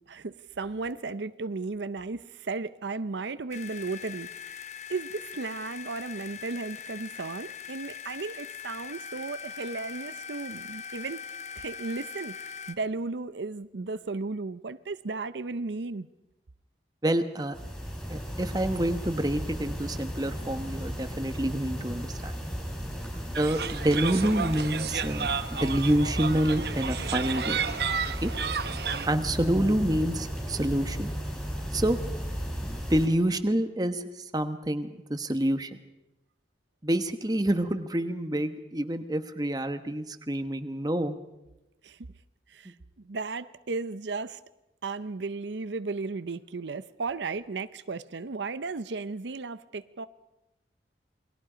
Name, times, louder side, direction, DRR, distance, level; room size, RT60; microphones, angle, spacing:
voice 1, 0.1-4.6 4.9-11.3 11.5-16.1 41.8-42.1 42.5-44.4 44.8-50.0, right 3 dB, 80° right, 0.7 m, -35 dB
sound 1, 3.5-12.8, left 7 dB, 40° left, 0.9 m, -41 dB
voice 2, 17.0-17.5 18.1-22.3 23.4-27.6 28.2-28.3 29.0-31.1 31.7-32.0 32.6-35.8 36.8-41.2, right 1 dB, 20° right, 1.1 m, -27 dB
sound 2, 17.5-33.1, equal, 5° left, 5.9 m, -35 dB
sound 3, 23.3-29.1, right 6 dB, 65° right, 1.0 m, -32 dB
28.5 x 21.0 x 5.1 m
head